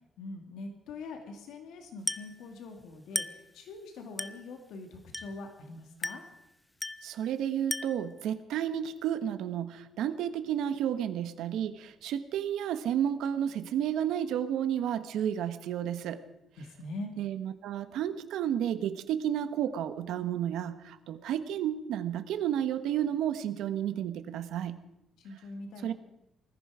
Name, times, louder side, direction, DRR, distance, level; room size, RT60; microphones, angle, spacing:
voice 1, 0.2-6.3 16.6-17.1 25.2-25.9, left 2 dB, 85° left, 4 dB, 2.3 m, -43 dB
Glass, 2.1-2.4 3.2-3.5 4.2-4.5 5.1-5.5 6.0-6.4 6.8-7.1 7.7-8.1, left 1 dB, 5° left, 0.5 m, -36 dB
voice 2, 7.0-16.2 17.2-24.8 25.8-25.9, right 10 dB, 80° right, 10 dB, 1.2 m, -31 dB
20.0 x 14.0 x 5.0 m, 0.86 s
cardioid pair, 165°, 0 cm